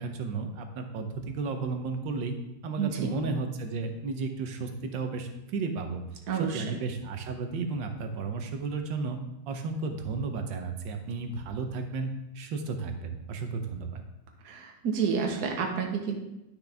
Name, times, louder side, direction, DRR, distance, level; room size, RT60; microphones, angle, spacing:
voice 1, 0.0-2.3 2.6-6.0 6.3-9.2 9.5-14.0, right 4 dB, 85° right, 5 dB, 1.6 m, -33 dB
voice 2, 2.8-3.1 6.3-6.6 14.4-16.2, right 6 dB, 60° right, 2 dB, 1.5 m, -29 dB
10.5 x 6.0 x 3.4 m, 0.90 s
omnidirectional pair, 2.0 m